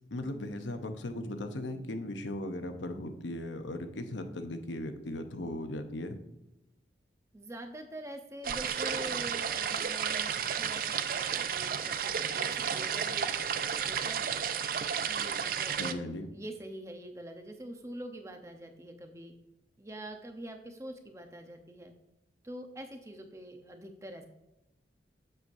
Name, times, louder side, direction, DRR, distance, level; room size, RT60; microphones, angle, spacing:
voice 1, 0.1-6.2 15.8-16.3, left 1 dB, 85° left, 7 dB, 0.8 m, -37 dB
voice 2, 7.3-14.4 15.1-19.3 19.8-21.9 22.4-24.3, right 1 dB, 15° right, 5 dB, 0.7 m, -45 dB
sound 1, 8.4-15.9, right 7 dB, 50° right, 0.4 m, -32 dB
7.7 x 7.0 x 2.7 m, 0.92 s
head